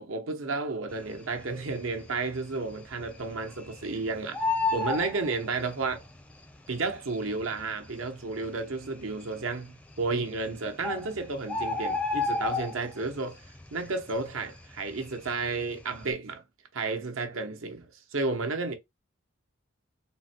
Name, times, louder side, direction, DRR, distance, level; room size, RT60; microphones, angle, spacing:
voice 1, 0.0-4.5 4.7-6.0 6.7-13.4 13.7-16.4 16.7-18.7, right 3 dB, 80° right, 0.9 m, -32 dB
Bird, 1.4-2.0 2.4-2.5 2.7-3.9 4.2-6.0 6.9-7.0 7.6-7.7 7.9-8.0 8.6-9.1 10.1-10.2 10.5-10.6 10.8-13.1 13.5-13.8 14.1-15.5 15.8-16.1, left 3 dB, 5° left, 0.4 m, -30 dB
3.9 x 2.2 x 4.2 m
head